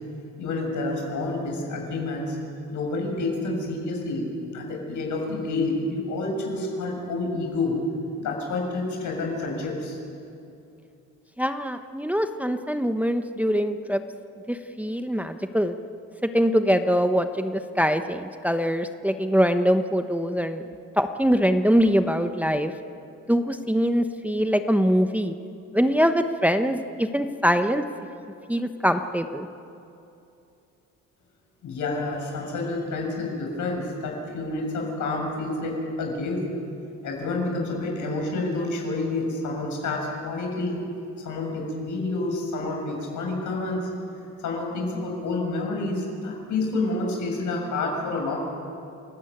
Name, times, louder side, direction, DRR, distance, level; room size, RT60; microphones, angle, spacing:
voice 1, 0.4-2.4 2.7-7.8 8.2-10.0 31.6-36.4 37.0-40.8 41.2-43.9 44.4-48.4, left 2 dB, 80° left, 0 dB, 6.7 m, -29 dB
voice 2, 11.4-14.0 14.5-15.7 16.2-20.6 21.0-22.7 23.3-25.3 25.7-27.8 28.5-29.5, equal, 5° right, 7 dB, 1.0 m, -23 dB
29.0 x 14.5 x 9.2 m, 2.7 s
cardioid pair, 90°, 30 cm